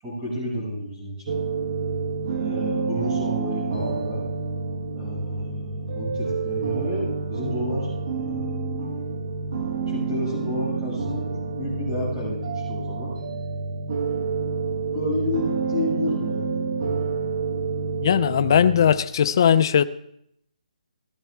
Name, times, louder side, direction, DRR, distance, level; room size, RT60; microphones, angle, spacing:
voice 1, 0.0-1.3 2.4-4.2 4.9-8.5 9.9-11.3 11.6-13.1 14.9-16.6, left 1 dB, 15° right, -6 dB, 6.2 m, -30 dB
sound 1, 1.3-19.0, right 4 dB, 45° right, 1.3 m, -28 dB
voice 2, 18.0-19.8, left 8 dB, 35° left, 12 dB, 0.5 m, -18 dB
16.5 x 12.0 x 3.5 m, 0.74 s
hypercardioid pair, 170°, 4 cm